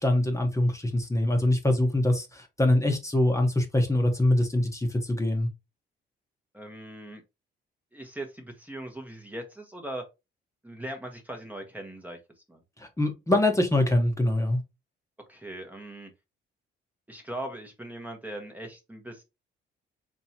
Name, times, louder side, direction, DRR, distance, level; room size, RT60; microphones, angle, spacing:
voice 1, 0.0-5.5 12.8-14.6, left 1 dB, 15° left, 1.1 m, -24 dB
voice 2, 6.5-7.2 7.9-10.0 10.6-12.2 12.5-12.6 15.3-16.1 17.1-19.2, right 1 dB, 10° right, 1.0 m, -39 dB
4.4 x 3.0 x 2.8 m
cardioid pair, 90°, 20 cm